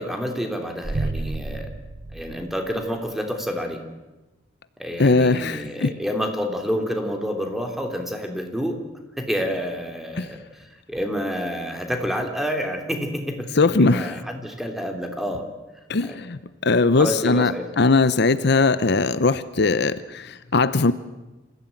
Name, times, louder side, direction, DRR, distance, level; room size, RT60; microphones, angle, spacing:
voice 1, 0.0-1.7 2.1-3.8 4.8-8.8 9.2-15.5 16.0-16.2 17.0-17.7, equal, ahead, 4 dB, 3.1 m, -28 dB
sound 1, 0.8-3.1, right 2 dB, 40° right, 0.7 m, -31 dB
voice 2, 5.0-5.9 10.2-10.3 13.6-14.1 15.9-20.9, left 3 dB, 65° left, 14 dB, 0.8 m, -20 dB
27.0 x 16.0 x 9.1 m, 1.1 s
head